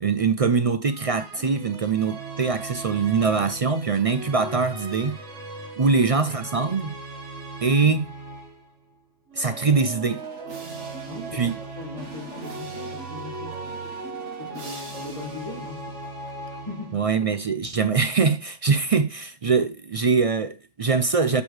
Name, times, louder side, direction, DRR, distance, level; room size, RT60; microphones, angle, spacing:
voice 1, 0.0-5.2 5.8-6.9 7.6-8.1 9.4-10.2 11.3-11.5 16.9-21.4, right 5 dB, 50° right, 0.4 m, -23 dB
sound 1, 0.8-8.7 9.3-17.2, right 3 dB, 75° right, 2.0 m, -38 dB
voice 2, 11.1-13.9 14.4-17.0, left 3 dB, 30° left, 1.9 m, -40 dB
8.3 x 6.2 x 3.2 m
omnidirectional pair, 1.2 m